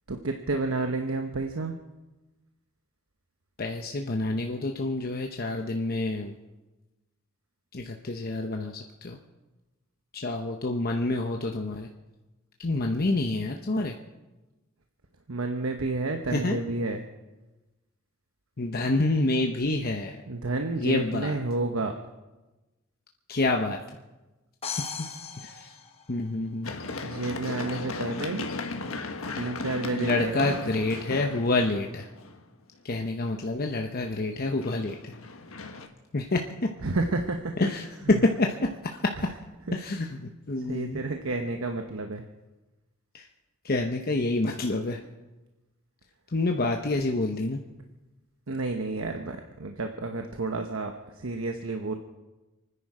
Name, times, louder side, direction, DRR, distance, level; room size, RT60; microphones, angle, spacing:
voice 1, 0.1-1.7 15.3-17.0 20.3-21.9 27.0-28.5 29.3-30.5 36.8-37.5 38.1-38.2 39.7-39.8 40.7-42.2 48.5-52.0, right 2 dB, 75° right, 5 dB, 1.0 m, -30 dB
voice 2, 3.6-6.4 7.7-9.2 10.1-11.9 12.6-14.0 16.3-16.6 18.6-20.2 20.8-21.4 23.3-24.0 25.4-25.8 26.1-26.7 29.9-32.1 32.8-35.1 36.1-36.7 37.6-39.3 39.7-41.0 43.1-43.3 43.6-45.0 46.3-47.6, left 2 dB, 45° left, 3 dB, 0.9 m, -28 dB
sound 1, 24.6-26.6, left 6 dB, 30° left, 1.2 m, -37 dB
Run, 26.6-32.5 34.3-35.9, left 3 dB, 80° left, 1.5 m, -37 dB
29.0 x 10.0 x 4.9 m, 1.1 s
head